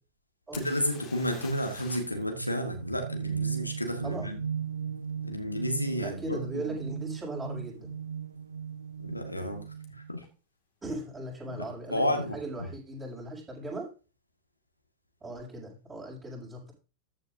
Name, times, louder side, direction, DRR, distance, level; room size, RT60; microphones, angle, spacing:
voice 1, 0.5-4.4 5.2-6.8 9.0-9.6 9.9-10.2 11.5-12.7, equal, 85° left, 1.7 m, -32 dB
sound 1, 0.5-2.3 2.5-2.6 6.0-6.1 6.8-7.0 7.2-7.8 9.8-9.9 10.2-10.3, left 8 dB, 35° left, 2.2 m, -48 dB
sound 2, 2.4-10.2, right 7 dB, 75° right, 0.5 m, -37 dB
voice 2, 4.0-4.3 6.0-8.0 10.8-13.9 15.2-16.7, right 1 dB, 15° right, 6.8 m, -38 dB
14.0 x 9.0 x 2.7 m
figure-of-eight pair, 90°, 0 cm